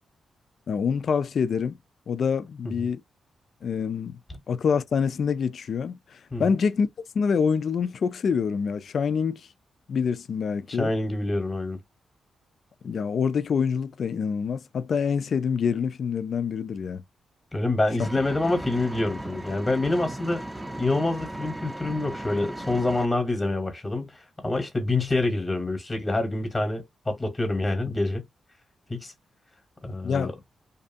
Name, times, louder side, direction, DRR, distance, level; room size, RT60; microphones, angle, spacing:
voice 1, 0.7-1.8 2.1-3.0 3.6-4.2 4.5-6.9 7.1-9.4 9.9-10.9 12.8-17.0 30.0-30.3, left 6 dB, 60° left, 0.3 m, -26 dB
voice 2, 10.7-11.8 17.5-20.4 20.8-28.2 28.9-29.1 29.8-30.3, left 2 dB, 15° left, 1.0 m, -26 dB
Engine, 18.0-23.0, right 1 dB, 10° right, 0.6 m, -36 dB
2.7 x 2.4 x 2.6 m
cardioid pair, 100°, 0 cm